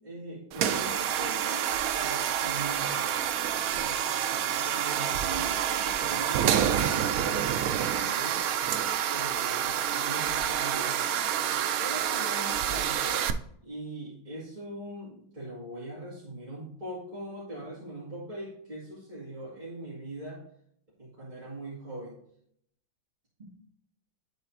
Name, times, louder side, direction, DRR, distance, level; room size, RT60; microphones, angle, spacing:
voice 1, 0.0-3.0 3.7-8.5 9.1-11.1 11.8-13.3 13.6-20.4 21.0-22.2 23.4-23.5, right 1 dB, 25° right, -8 dB, 2.2 m, -41 dB
sound 1, 0.5-13.3, right 9 dB, 80° right, 0.8 m, -28 dB
11.5 x 4.0 x 2.8 m, 0.68 s
omnidirectional pair, 2.1 m